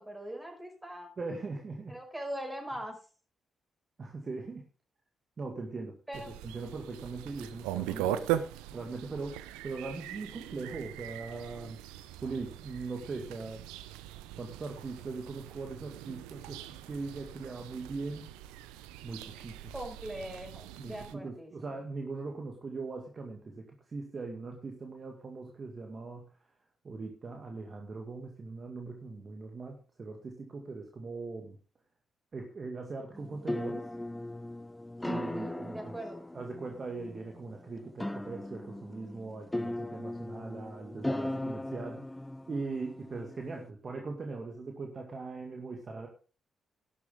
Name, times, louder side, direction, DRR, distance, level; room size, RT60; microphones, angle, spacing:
voice 1, 0.0-1.1 1.9-3.0 6.1-6.3 19.7-21.5 35.2-36.2, right 1 dB, 15° right, 2 dB, 5.8 m, -41 dB
voice 2, 1.2-2.0 4.0-4.6 5.4-8.4 8.7-11.8 12.2-14.0 14.4-18.3 19.0-19.7 20.8-26.3 26.8-31.6 32.3-33.9 35.0-36.0 36.3-42.1 42.5-46.1, right 3 dB, 45° right, 2 dB, 2.1 m, -40 dB
sound 1, 6.1-21.1, right 12 dB, 80° right, 0.6 m, -40 dB
sound 2, 33.1-43.7, left 1 dB, 15° left, 0.6 m, -38 dB
12.0 x 11.5 x 3.7 m, 0.37 s
hypercardioid pair, 40°, 0 cm